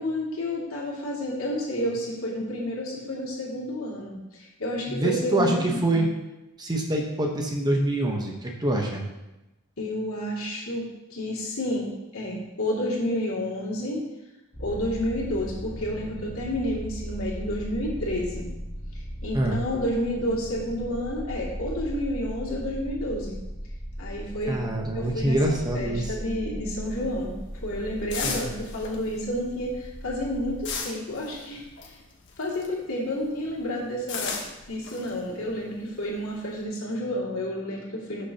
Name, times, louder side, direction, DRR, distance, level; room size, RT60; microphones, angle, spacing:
voice 1, 0.0-6.0 9.8-10.9 11.1-14.0 14.6-18.5 19.2-23.4 24.0-24.6 24.9-32.0 32.4-34.4 34.7-38.3, left 1 dB, 75° left, -4 dB, 2.4 m, -30 dB
voice 2, 4.9-6.1 6.6-9.1 19.3-19.6 24.5-26.1 28.2-28.4, right 1 dB, 20° right, 1 dB, 1.0 m, -25 dB
sound 1, 14.5-30.8, equal, 15° left, 1.1 m, -37 dB
sound 2, 26.9-32.9 33.2-36.6, left 5 dB, 60° left, 1.3 m, -37 dB
11.5 x 6.5 x 2.9 m, 0.99 s
head